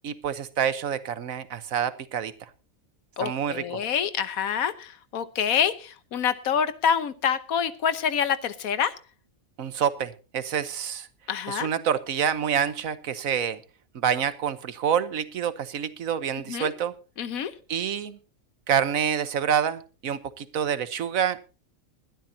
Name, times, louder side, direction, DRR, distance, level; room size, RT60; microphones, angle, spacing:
voice 1, 0.0-2.5 3.2-3.8 9.6-11.1 11.5-13.6 13.9-16.9 17.7-18.2 18.7-21.6, right 8 dB, 75° right, 14 dB, 1.4 m, -27 dB
voice 2, 3.2-8.9 11.3-11.7 16.5-16.7 17.2-17.5, left 7 dB, 85° left, 13 dB, 1.4 m, -26 dB
21.0 x 12.0 x 2.8 m, 0.33 s
omnidirectional pair, 1.4 m